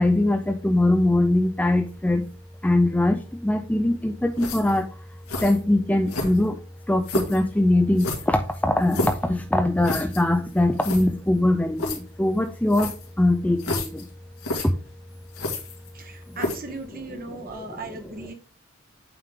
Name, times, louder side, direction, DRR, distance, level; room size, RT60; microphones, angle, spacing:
voice 1, 0.0-2.3 2.6-4.9 5.4-6.6 6.9-14.1 14.6-14.7 16.3-16.4 16.9-18.3, left 1 dB, 5° left, 5 dB, 0.4 m, -22 dB
sound 1, 4.4-4.8 5.3-5.6 6.1-6.6 7.0-7.4 8.0-9.3 9.8-10.2 10.5-10.6 10.8-11.0 11.8-12.0 12.7-13.1 13.6-14.0 14.4-14.7 15.3-16.0 16.4-16.7, left 2 dB, 90° left, 2.0 m, -30 dB
voice 2, 15.9-18.3, right 3 dB, 45° right, 5 dB, 1.1 m, -37 dB
8.8 x 3.7 x 3.6 m, 0.35 s
head